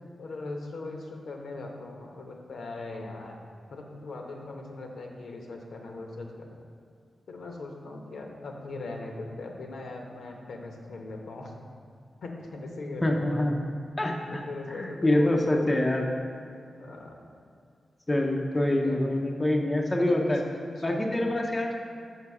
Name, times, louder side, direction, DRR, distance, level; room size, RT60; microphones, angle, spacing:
voice 1, 0.2-3.4 3.7-6.6 7.3-11.5 12.2-13.5 14.3-15.9 16.8-17.2 18.3-19.0 20.0-21.1, left 2 dB, 80° left, 1 dB, 0.9 m, -39 dB
voice 2, 13.0-13.5 14.0-14.4 14.7-16.1 18.1-20.4 20.8-21.7, left 1 dB, 15° left, 1 dB, 0.5 m, -25 dB
5.9 x 5.8 x 4.7 m, 2.4 s
wide cardioid pair, 155°, 0 cm